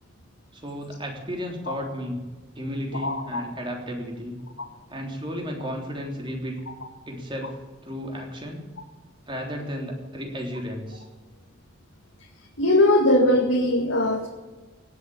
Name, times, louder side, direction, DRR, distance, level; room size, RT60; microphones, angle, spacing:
voice 1, 0.5-2.2 2.6-4.4 4.9-6.6 7.1-8.7 9.3-11.1, equal, 25° right, 1 dB, 3.4 m, -33 dB
voice 2, 3.0-3.5 12.6-14.3, left 1 dB, 90° left, 0 dB, 2.1 m, -20 dB
17.5 x 8.1 x 9.6 m, 1.3 s
head